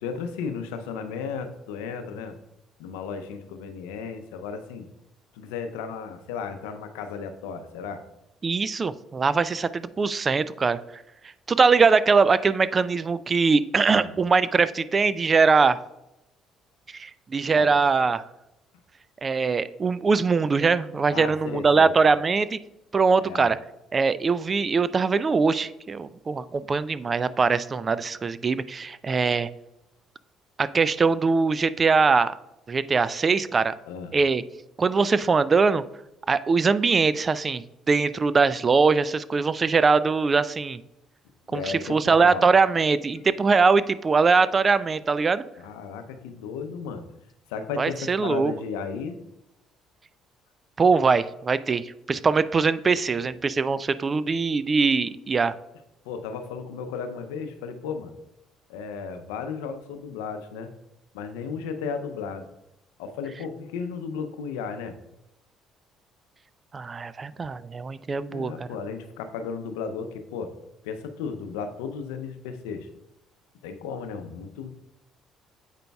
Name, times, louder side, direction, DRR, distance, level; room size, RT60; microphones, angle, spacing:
voice 1, 0.0-2.4 2.8-4.9 5.3-8.0 13.9-14.1 17.6-17.7 21.1-21.9 23.2-23.5 33.8-34.2 41.5-42.5 45.6-47.0 47.5-49.2 52.9-53.3 56.0-58.1 58.7-60.7 61.1-62.5 63.0-65.0 68.3-70.5 70.8-72.9 73.6-74.7, left 6 dB, 90° left, 8 dB, 0.5 m, -34 dB
voice 2, 8.4-10.8 11.5-15.8 16.9-18.2 19.2-22.6 22.9-23.6 23.9-29.5 30.6-32.3 32.7-33.7 34.1-34.4 34.8-35.8 36.3-40.8 41.5-45.4 47.8-48.5 50.8-55.6 66.7-68.7, right 4 dB, 35° right, 16 dB, 0.3 m, -22 dB
8.1 x 5.1 x 2.3 m, 0.89 s
supercardioid pair, 70°, 0 cm